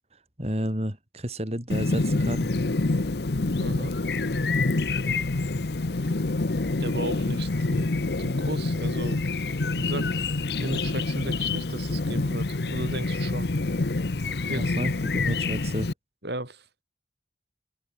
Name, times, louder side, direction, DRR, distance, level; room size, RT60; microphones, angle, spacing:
voice 1, 0.4-2.5 14.6-15.9, equal, 35° right, 5.7 m, -31 dB
Chirp tweet, 1.7-15.9, left 3 dB, 65° left, 0.9 m, -27 dB
voice 2, 3.5-3.9 6.8-9.2 9.7-10.2 10.6-13.5 14.5-14.8 16.2-16.8, right 1 dB, 70° right, 7.3 m, -36 dB
head